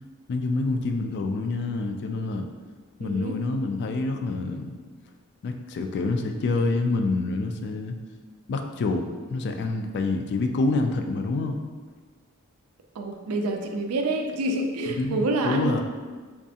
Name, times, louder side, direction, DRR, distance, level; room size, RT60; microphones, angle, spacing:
voice 1, 0.3-2.5 3.0-4.8 5.4-8.0 8.5-11.6 15.0-15.8, left 3 dB, 50° left, 5 dB, 0.3 m, -27 dB
voice 2, 3.0-3.4 13.0-15.8, right 2 dB, 75° right, 4 dB, 0.4 m, -27 dB
3.5 x 3.1 x 2.7 m, 1.5 s
head